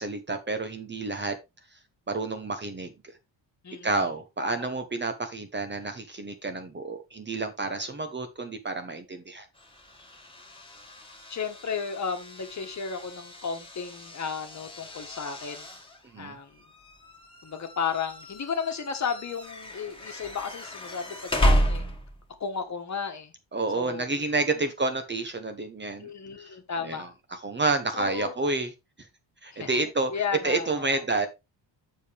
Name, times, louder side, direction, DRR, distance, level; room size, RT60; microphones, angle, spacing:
voice 1, 0.0-1.4 2.1-2.9 3.8-9.5 16.1-16.4 23.5-26.1 26.4-26.5 26.8-28.7 29.4-30.1 30.4-31.3, right 3 dB, 25° right, 1.1 m, -29 dB
voice 2, 3.6-4.1 4.6-4.7 11.3-15.7 16.2-16.6 17.4-21.9 22.4-23.3 23.7-24.1 24.5-24.6 26.0-27.1 27.9-28.4 29.5-29.8 30.1-30.9, left 6 dB, 35° left, 1.5 m, -34 dB
sound 1, 9.5-22.4, equal, 10° left, 1.9 m, -33 dB
7.4 x 7.0 x 3.4 m
cardioid pair, 145°, 45 cm